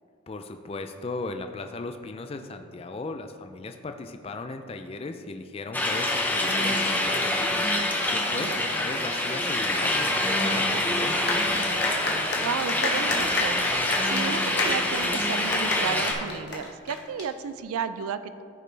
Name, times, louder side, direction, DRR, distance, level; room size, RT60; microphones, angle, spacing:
voice 1, 0.3-11.3, left 3 dB, 25° left, 7 dB, 0.3 m, -37 dB
sound 1, 5.7-16.1, left 1 dB, 10° left, 0.7 m, -26 dB
sound 2, 11.3-17.2, left 3 dB, 50° left, 1.2 m, -30 dB
voice 2, 12.4-13.6 14.0-18.4, right 6 dB, 80° right, 12 dB, 0.4 m, -33 dB
14.5 x 5.1 x 3.3 m, 2.3 s
head